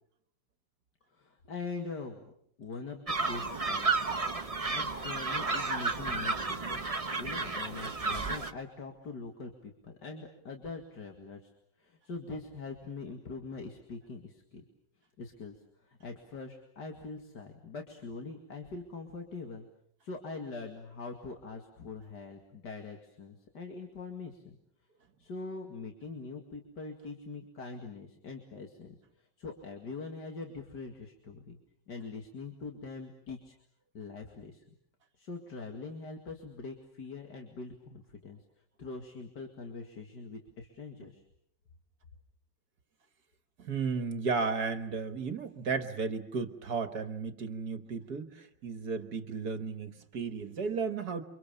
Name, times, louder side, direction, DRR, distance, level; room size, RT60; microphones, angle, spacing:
voice 1, 1.1-2.3 2.6-3.9 4.7-6.8 7.1-11.5 11.8-14.6 15.2-19.6 20.0-24.6 25.2-31.6 31.9-33.5 33.9-34.6 35.2-38.4 38.8-41.2, left 4 dB, 70° left, 3 dB, 2.8 m, -43 dB
sound 1, 3.1-8.5, right 3 dB, 20° right, 1.3 m, -32 dB
voice 2, 43.6-51.2, right 5 dB, 65° right, 9 dB, 1.9 m, -34 dB
29.5 x 25.5 x 7.0 m, 0.69 s
omnidirectional pair, 1.9 m